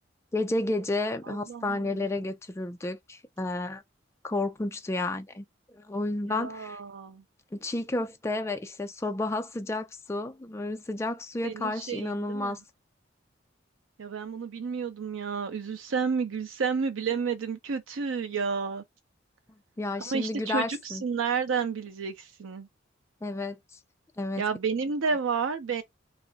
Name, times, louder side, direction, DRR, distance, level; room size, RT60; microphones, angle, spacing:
voice 1, 0.3-3.8 4.2-5.4 5.7-6.8 7.5-12.6 19.8-21.0 23.2-23.6 24.2-24.4, left 2 dB, 15° left, 0.3 m, -31 dB
voice 2, 1.3-2.1 6.3-7.2 11.4-12.6 14.0-18.8 20.0-22.7 24.4-25.8, right 5 dB, 90° right, 0.5 m, -31 dB
2.4 x 2.0 x 3.8 m
head